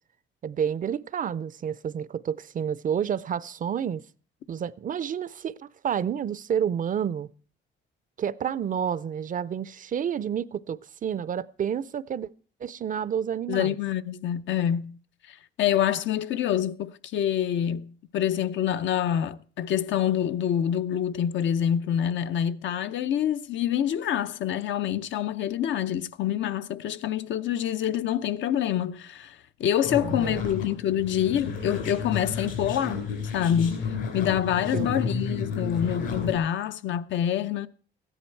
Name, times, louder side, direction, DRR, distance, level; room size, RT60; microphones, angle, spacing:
voice 1, 0.4-4.0 4.5-7.3 8.2-12.3 12.6-13.8 30.0-30.4 34.7-34.9, right 8 dB, 40° right, 0.4 m, -29 dB
voice 2, 13.5-15.0 15.3-33.0 33.3-37.7, left 10 dB, 70° left, 0.6 m, -26 dB
sound 1, 29.8-36.4, left 5 dB, 90° left, 3.9 m, -32 dB
14.0 x 10.0 x 4.5 m
cardioid pair, 90°, 20 cm